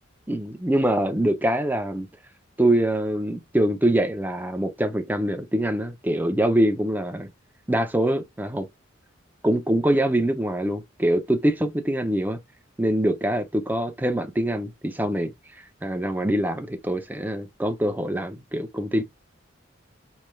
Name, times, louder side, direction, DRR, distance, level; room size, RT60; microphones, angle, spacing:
voice 1, 0.3-2.1 2.6-7.3 7.7-8.7 9.4-12.4 12.8-15.3 15.8-19.0, right 1 dB, 10° right, 0.5 m, -24 dB
4.3 x 3.2 x 2.2 m
head